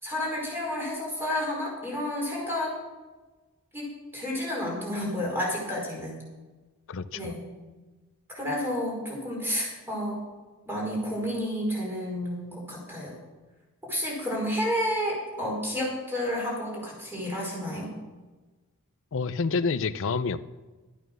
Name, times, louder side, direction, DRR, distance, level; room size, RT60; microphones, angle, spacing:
voice 1, 0.0-2.7 3.7-3.9 4.1-6.2 7.1-7.4 8.3-10.2 10.7-13.1 13.8-17.9, left 1 dB, 10° right, -3 dB, 4.9 m, -30 dB
voice 2, 6.9-7.3 19.1-20.4, left 4 dB, 60° left, 13 dB, 0.6 m, -28 dB
13.0 x 9.1 x 6.3 m, 1.2 s
head